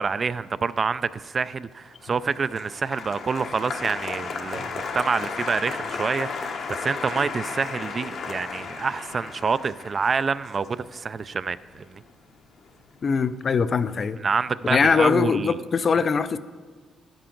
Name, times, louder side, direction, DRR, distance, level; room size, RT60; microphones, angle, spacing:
voice 1, 0.0-12.0 14.2-15.6, right 5 dB, 40° right, 0.3 m, -27 dB
Applause, 1.9-12.3 12.6-13.2, left 4 dB, 60° left, 0.9 m, -34 dB
voice 2, 13.0-14.2 14.6-16.4, left 5 dB, 45° left, 0.4 m, -22 dB
11.0 x 10.0 x 3.8 m
cardioid pair, 90°, 0 cm